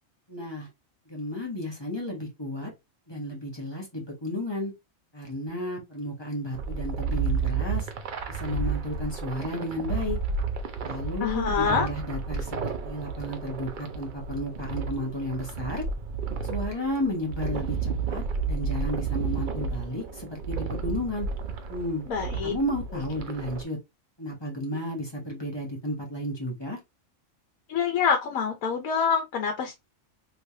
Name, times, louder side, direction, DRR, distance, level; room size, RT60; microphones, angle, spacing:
voice 1, 0.3-0.7 1.1-2.7 3.1-4.7 5.1-7.9 8.3-10.2 10.8-15.8 16.4-21.3 21.7-22.1 22.4-23.8 24.2-26.8, left 1 dB, 20° left, 1.1 m, -33 dB
sound 1, 6.5-23.6, right 5 dB, 50° right, 0.6 m, -32 dB
voice 2, 11.2-11.9 22.1-22.5 27.7-29.7, left 6 dB, 90° left, 1.2 m, -26 dB
3.2 x 3.0 x 2.7 m
omnidirectional pair, 1.4 m